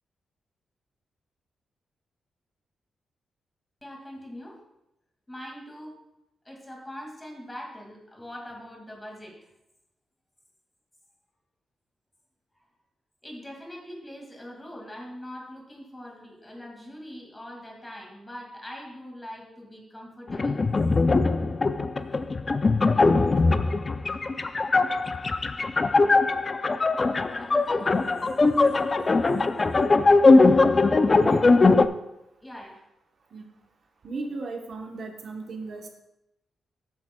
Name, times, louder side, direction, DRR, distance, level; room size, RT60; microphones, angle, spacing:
voice 1, 3.8-4.6 5.3-6.0 6.5-9.4 13.2-20.6 23.4-23.5 24.1-24.2 27.3-27.9 32.4-32.8, equal, 10° left, 0 dB, 2.1 m, -42 dB
sound 1, 20.3-31.9, left 3 dB, 25° left, 0.4 m, -21 dB
voice 2, 31.1-31.6 33.3-33.5 34.0-35.9, right 3 dB, 50° right, 3 dB, 0.9 m, -36 dB
13.0 x 8.7 x 2.2 m, 0.88 s
wide cardioid pair, 150°, 0 cm